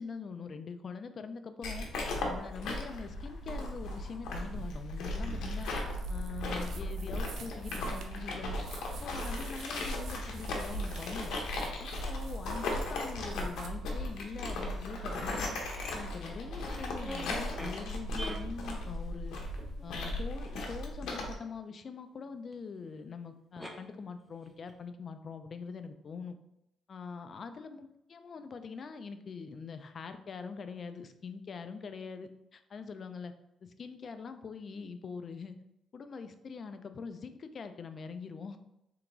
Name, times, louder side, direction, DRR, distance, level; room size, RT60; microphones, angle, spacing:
voice 1, 0.0-1.8 2.2-5.7 6.1-8.6 8.9-11.3 11.8-15.5 15.9-19.4 19.8-26.4 26.9-33.3 33.6-35.6 35.9-38.6, left 5 dB, 45° left, 9 dB, 0.4 m, -43 dB
sound 1, 1.6-21.3, left 1 dB, 80° left, 0.8 m, -37 dB
sound 2, 5.5-13.7, right 6 dB, 75° right, 0.5 m, -52 dB
sound 3, 16.2-17.8 18.1-19.0 19.7-19.8 22.5-22.6 22.8-22.9 23.6-23.7 24.2-24.8, equal, 5° right, 0.7 m, -44 dB
3.4 x 2.9 x 3.8 m, 0.86 s
cardioid pair, 90°, 0 cm